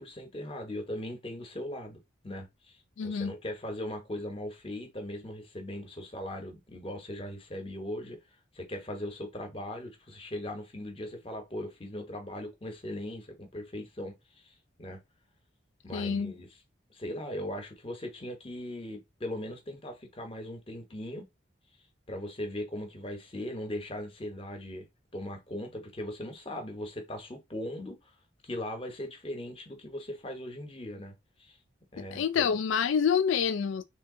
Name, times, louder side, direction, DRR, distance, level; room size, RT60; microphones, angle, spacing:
voice 1, 0.0-2.0 2.2-8.2 8.5-15.0 15.8-16.6 16.9-21.3 22.1-24.9 25.1-28.1 28.4-31.6 31.9-32.6, left 1 dB, 30° left, 0.9 m, -39 dB
voice 2, 3.0-3.3 15.9-16.3 32.1-33.8, left 7 dB, 80° left, 0.3 m, -27 dB
3.4 x 2.8 x 3.6 m
head